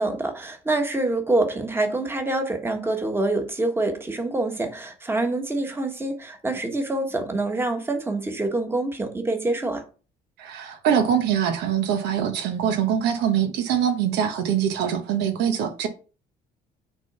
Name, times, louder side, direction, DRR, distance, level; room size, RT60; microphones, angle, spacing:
voice 1, 0.0-9.8, right 2 dB, 15° right, 1.4 m, -26 dB
voice 2, 10.4-15.9, right 8 dB, 85° right, 1.2 m, -23 dB
6.1 x 3.8 x 5.4 m
cardioid pair, 110°, 17 cm